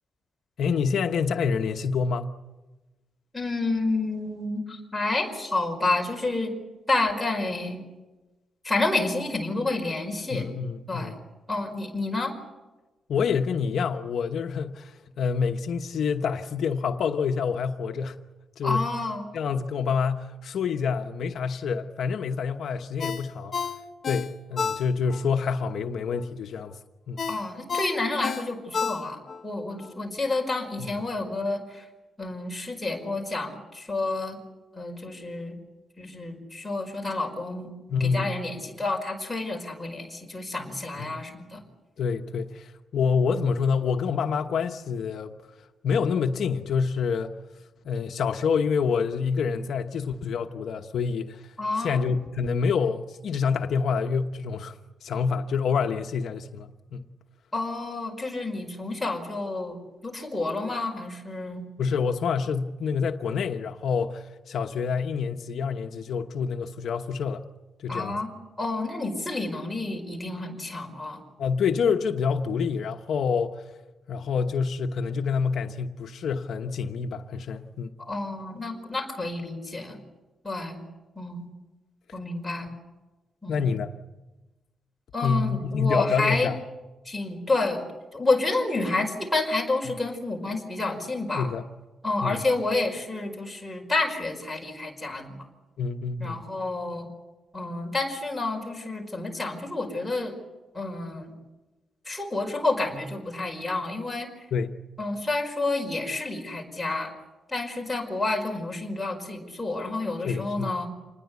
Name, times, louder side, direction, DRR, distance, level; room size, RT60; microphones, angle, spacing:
voice 1, 0.6-2.4 10.3-11.2 13.1-18.2 18.6-18.9 19.3-23.7 24.0-26.8 27.1-27.2 30.8-30.9 37.9-38.4 41.0-41.3 42.0-45.4 45.8-47.3 47.8-57.1 61.8-67.4 67.8-68.2 71.4-73.7 74.1-77.9 83.5-83.9 85.2-86.6 89.9-90.0 91.4-91.7 92.2-92.4 95.8-96.5 104.5-104.8 110.2-110.8, left 6 dB, 65° left, 1.1 m, -27 dB
voice 2, 3.3-6.5 6.9-7.8 8.6-10.4 10.9-11.1 11.5-12.3 18.6-19.2 27.3-31.8 32.2-34.4 34.7-35.6 36.0-37.7 38.0-41.6 51.6-52.1 57.5-61.6 67.9-68.3 68.6-71.2 78.0-80.0 80.4-80.8 81.1-81.5 82.1-82.7 83.4-83.7 85.1-86.5 87.0-87.8 88.1-91.5 92.0-95.3 96.2-97.1 97.5-100.3 100.7-101.3 102.0-104.3 105.0-107.1 107.5-110.9, left 2 dB, 5° left, 5.1 m, -29 dB
Ringtone, 23.0-25.3 25.6-25.7 27.2-29.4 29.8-29.9, left 6 dB, 35° left, 1.4 m, -31 dB
27.5 x 20.0 x 8.3 m
wide cardioid pair, 165°, 0 cm